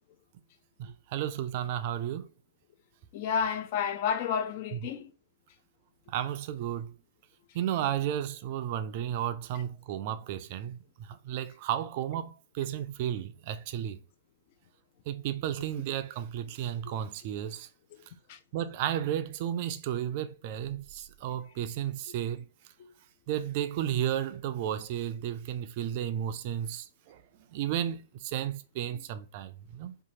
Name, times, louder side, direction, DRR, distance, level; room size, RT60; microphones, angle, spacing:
voice 1, 0.8-2.3 4.8-4.9 6.1-6.9 7.5-14.0 15.1-17.7 18.5-22.4 23.3-27.2 27.5-30.0, right 10 dB, 45° right, 0.3 m, -33 dB
voice 2, 3.1-5.1 16.9-17.0 18.3-18.4, left 7 dB, 45° left, 0.4 m, -31 dB
2.8 x 2.3 x 2.7 m
hypercardioid pair, 115°, 0 cm